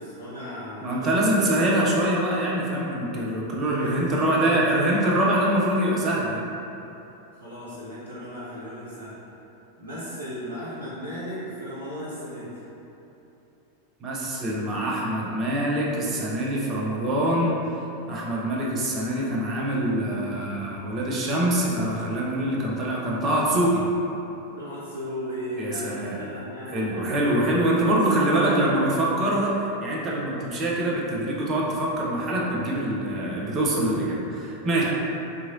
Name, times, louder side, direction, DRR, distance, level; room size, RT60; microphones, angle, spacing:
voice 1, 0.0-1.4 3.7-5.3 7.3-9.2 9.8-12.5 24.6-27.6 27.8-28.9 34.6-34.8, equal, 85° left, -12 dB, 0.5 m, -36 dB
voice 2, 0.8-6.5 14.0-17.5 18.1-23.9 25.6-26.2 26.7-34.8, right 1 dB, 30° right, -4 dB, 0.5 m, -24 dB
2.9 x 2.4 x 2.6 m, 3.0 s
figure-of-eight pair, 90°, 0 cm